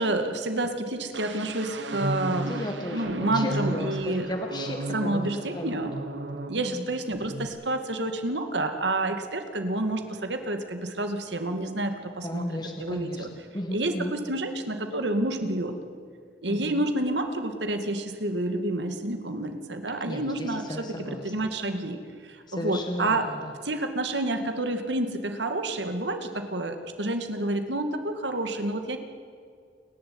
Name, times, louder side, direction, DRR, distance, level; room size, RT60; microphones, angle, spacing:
voice 1, 0.0-4.3 4.9-5.9 6.5-13.3 13.7-15.8 16.4-23.3 23.6-29.0, right 2 dB, 70° right, 7 dB, 2.3 m, -29 dB
sound 1, 1.1-6.9 7.2-7.5, right 2 dB, 90° right, 1.7 m, -34 dB
voice 2, 2.3-6.9 12.2-14.2 16.5-16.9 20.0-21.3 22.5-23.5, left 1 dB, 25° left, 3 dB, 1.9 m, -35 dB
29.0 x 11.5 x 9.6 m, 2.1 s
head